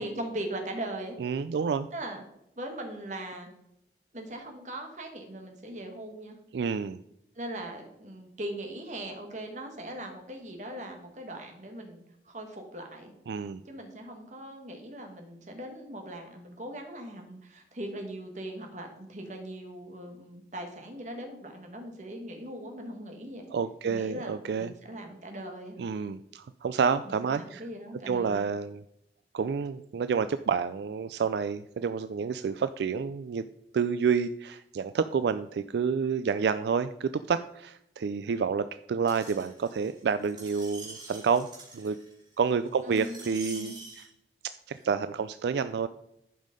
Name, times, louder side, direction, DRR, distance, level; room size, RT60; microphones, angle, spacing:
voice 1, 0.0-1.2 1.9-2.2 2.6-3.5 4.1-6.4 7.3-13.1 13.6-23.4 23.8-25.8 27.0-28.5 42.8-43.2 43.5-43.8, right 1 dB, 40° right, 3 dB, 1.7 m, -40 dB
voice 2, 1.2-1.9 6.5-7.0 13.3-13.6 23.5-24.7 25.8-27.6 28.1-28.8 29.3-33.4 33.7-41.5 41.7-42.0 42.4-44.0 44.7-45.9, right 6 dB, 75° right, 12 dB, 0.3 m, -29 dB
Screech, 39.1-44.0 44.7-44.8, right 3 dB, 25° right, 3.1 m, -46 dB
11.0 x 5.4 x 5.2 m, 0.80 s
head